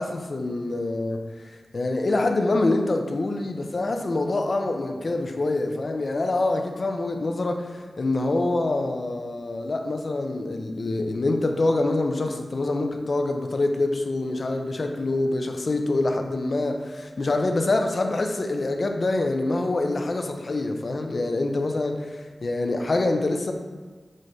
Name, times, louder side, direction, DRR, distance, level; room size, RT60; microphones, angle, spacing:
voice 1, 0.0-23.5, left 2 dB, 60° left, 4 dB, 0.5 m, -25 dB
6.3 x 2.1 x 4.0 m, 1.4 s
cardioid pair, 45°, 0 cm